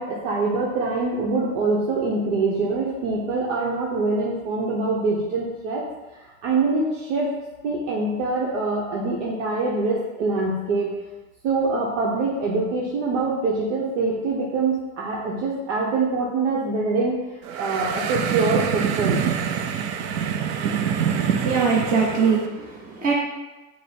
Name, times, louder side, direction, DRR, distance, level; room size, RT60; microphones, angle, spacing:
voice 1, 0.0-5.8 6.1-7.3 7.6-10.9 11.4-17.2 17.5-19.2, right 3 dB, 75° right, -4 dB, 0.9 m, -24 dB
sound 1, 17.4-22.5, right 7 dB, 50° right, 0.5 m, -25 dB
voice 2, 21.3-23.1, right 5 dB, 25° right, -5 dB, 0.9 m, -22 dB
5.2 x 2.1 x 4.3 m, 1.1 s
supercardioid pair, 115°, 36 cm